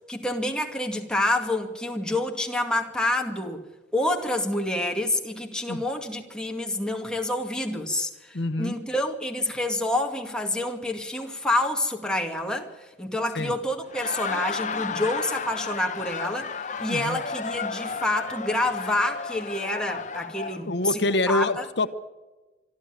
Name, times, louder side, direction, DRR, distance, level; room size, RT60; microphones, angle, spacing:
voice 1, 0.1-3.6 3.9-12.7 13.0-16.5 16.8-21.0 21.3-21.7, left 1 dB, 5° left, 2.1 m, -28 dB
voice 2, 8.3-8.8 13.3-13.5 16.9-17.2 20.6-21.9, left 2 dB, 75° left, 1.1 m, -26 dB
Laughter, 13.8-20.6, left 5 dB, 45° left, 1.0 m, -33 dB
26.0 x 12.0 x 9.7 m
head